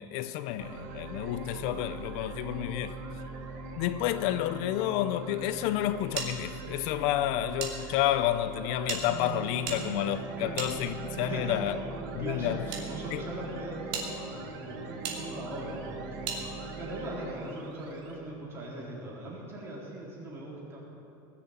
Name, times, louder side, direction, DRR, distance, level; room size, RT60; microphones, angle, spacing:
voice 1, 0.0-3.0 3.8-11.8 12.2-12.6 13.1-13.2, left 12 dB, 55° left, 0.5 m, -30 dB
sound 1, 0.6-18.1, right 3 dB, 65° right, 1.9 m, -41 dB
sound 2, 6.2-7.7 8.0-8.1 8.8-11.3 12.1-12.8 13.4-13.5 13.9-14.1 15.0-15.2 16.2-16.4, right 6 dB, 50° right, 2.6 m, -38 dB
voice 2, 11.2-11.7 12.2-16.3 16.8-20.8, right 1 dB, 20° right, 4.0 m, -40 dB
19.0 x 7.3 x 8.9 m
supercardioid pair, 155°, 12 cm